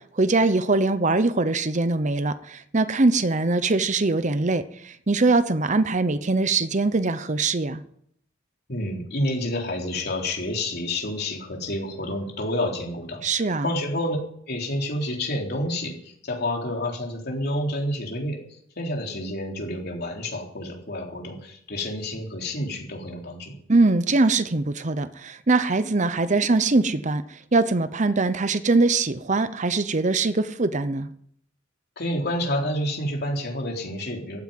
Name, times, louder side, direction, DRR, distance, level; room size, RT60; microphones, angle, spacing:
voice 1, 0.2-7.8 13.2-13.7 23.7-27.2 27.5-31.1, right 3 dB, 40° right, 13 dB, 0.8 m, -22 dB
voice 2, 8.7-14.2 14.5-18.4 18.8-23.5 32.0-34.4, left 1 dB, 55° left, 0 dB, 3.8 m, -29 dB
15.0 x 9.7 x 8.9 m, 0.69 s
head